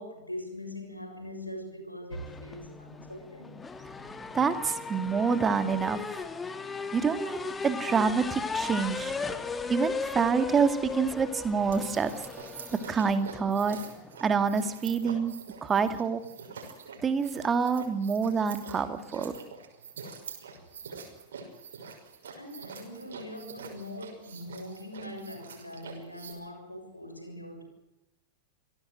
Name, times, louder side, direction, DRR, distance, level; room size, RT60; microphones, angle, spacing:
voice 1, 0.0-3.6 22.4-27.6, left 1 dB, 90° left, 4 dB, 7.0 m, -42 dB
sound 1, 2.1-14.7, left 4 dB, 15° left, 2.1 m, -37 dB
voice 2, 4.3-6.2 6.9-7.4 7.6-9.1 9.7-12.1 12.7-13.8 14.2-15.3 15.6-16.2 17.0-19.3, right 5 dB, 20° right, 10 dB, 2.2 m, -27 dB
sound 2, 11.6-26.3, right 5 dB, 65° right, 5.9 m, -45 dB
28.0 x 18.0 x 7.8 m, 0.89 s
figure-of-eight pair, 90°, 0 cm